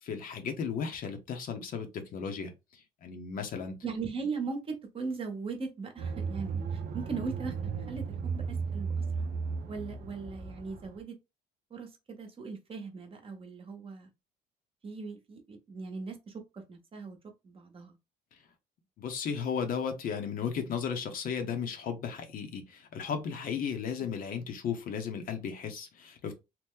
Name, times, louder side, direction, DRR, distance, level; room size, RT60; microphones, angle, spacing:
voice 1, 0.0-3.8 19.0-26.3, left 6 dB, 55° left, 0.8 m, -35 dB
voice 2, 3.8-9.3 9.7-11.2 11.7-14.1 14.8-17.2 17.4-18.0, right 4 dB, 35° right, 0.9 m, -39 dB
sound 1, 6.0-11.0, right 5 dB, 55° right, 0.5 m, -35 dB
2.9 x 2.1 x 3.6 m
cardioid pair, 110°, 17 cm